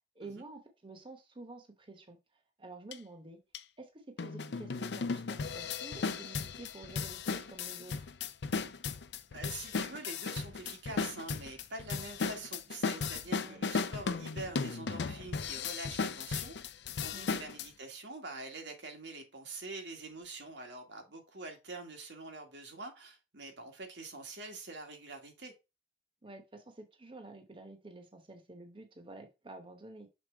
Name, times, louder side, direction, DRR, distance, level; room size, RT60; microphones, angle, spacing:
voice 1, 0.2-2.2 2.6-3.4 3.8-7.9 13.4-13.7 17.1-17.4 26.2-30.1, right 2 dB, 30° right, 0.9 m, -50 dB
sound 1, 2.9-3.0 3.5-3.6 4.2-17.7, left 5 dB, 75° left, 0.5 m, -36 dB
voice 2, 9.3-16.6 17.0-25.5, right 3 dB, 90° right, 1.7 m, -45 dB
6.2 x 3.6 x 4.4 m
head